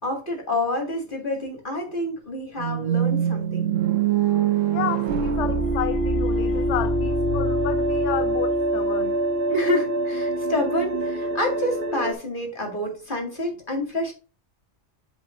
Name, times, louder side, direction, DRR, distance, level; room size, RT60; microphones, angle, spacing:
voice 1, 0.0-3.8 9.5-14.1, left 1 dB, 40° left, 2.4 m, -28 dB
sound 1, 2.6-6.7, right 11 dB, 85° right, 1.2 m, -24 dB
voice 2, 4.7-9.2, left 11 dB, 70° left, 0.8 m, -31 dB
sound 2, 5.1-12.1, right 1 dB, 50° right, 1.2 m, -24 dB
7.7 x 3.2 x 5.7 m
omnidirectional pair, 1.3 m